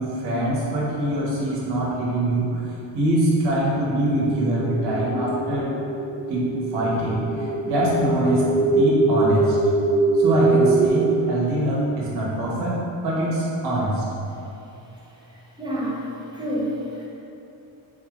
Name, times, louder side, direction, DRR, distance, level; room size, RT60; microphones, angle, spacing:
voice 1, 0.0-2.6 2.9-5.7 6.3-8.4 8.7-9.6 10.1-14.0, right 1 dB, 65° right, -6 dB, 1.1 m, -23 dB
sound 1, 3.9-10.9, right 2 dB, 45° left, 0.6 m, -23 dB
voice 2, 15.6-16.0 16.3-17.1, equal, 10° right, -6 dB, 0.5 m, -28 dB
4.1 x 2.4 x 3.0 m, 2.9 s
cardioid pair, 140°, 44 cm